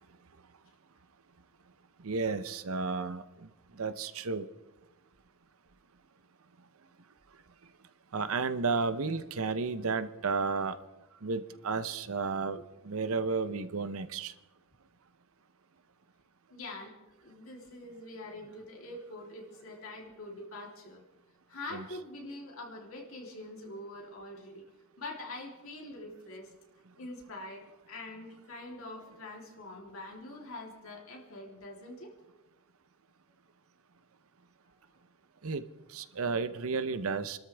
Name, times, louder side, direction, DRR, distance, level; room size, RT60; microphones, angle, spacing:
voice 1, 2.0-3.2 3.8-4.5 8.1-10.7 11.2-12.6 12.9-14.3 21.7-21.8 35.4-35.6 35.9-37.4, right 4 dB, 65° right, 12 dB, 0.7 m, -32 dB
voice 2, 16.5-16.9 17.2-21.0 21.5-24.6 25.0-26.5 27.0-32.1, left 2 dB, 65° left, 0 dB, 3.3 m, -44 dB
27.5 x 13.0 x 3.4 m, 1.1 s
head